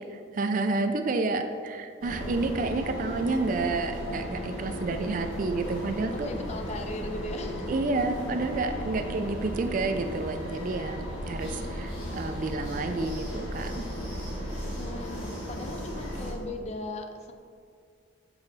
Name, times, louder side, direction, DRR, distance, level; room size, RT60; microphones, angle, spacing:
voice 1, 0.0-6.3 7.7-13.8, right 3 dB, 40° right, 7 dB, 0.3 m, -30 dB
sound 1, 2.0-16.3, equal, 90° left, 1.5 m, -36 dB
voice 2, 6.1-7.7 8.8-8.9 9.7-10.3 14.8-17.3, left 2 dB, 35° left, 6 dB, 0.4 m, -38 dB
7.1 x 3.9 x 4.0 m, 2.2 s
head